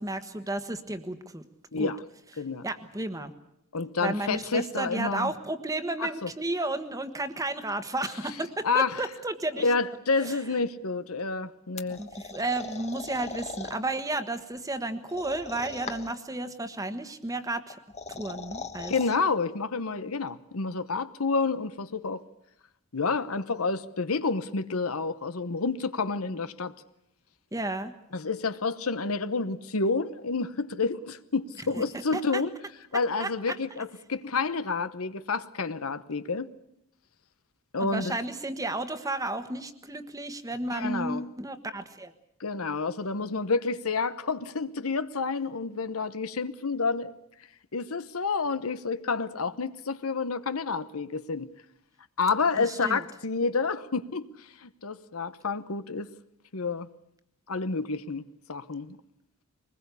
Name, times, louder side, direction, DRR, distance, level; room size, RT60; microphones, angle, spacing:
voice 1, 0.0-1.4 1.8-1.9 2.6-3.3 4.0-9.7 10.2-10.4 12.0-17.8 18.1-18.9 27.5-27.9 31.8-31.9 32.1-32.4 33.2-33.3 37.8-42.1 52.6-53.0, right 2 dB, 15° right, 1.4 m, -32 dB
voice 2, 1.7-2.0 2.4-2.6 3.7-5.3 6.0-6.3 8.6-9.0 9.6-12.0 18.9-22.2 22.9-26.7 28.1-32.5 32.9-36.5 37.7-38.1 40.7-41.2 42.4-47.1 47.7-51.5 52.2-56.1 56.5-56.9 57.5-59.0, left 4 dB, 80° left, 1.0 m, -29 dB
sound 1, 11.8-13.8 15.1-16.3 17.7-19.2, left 4 dB, 30° left, 1.3 m, -40 dB
23.5 x 20.5 x 8.4 m
head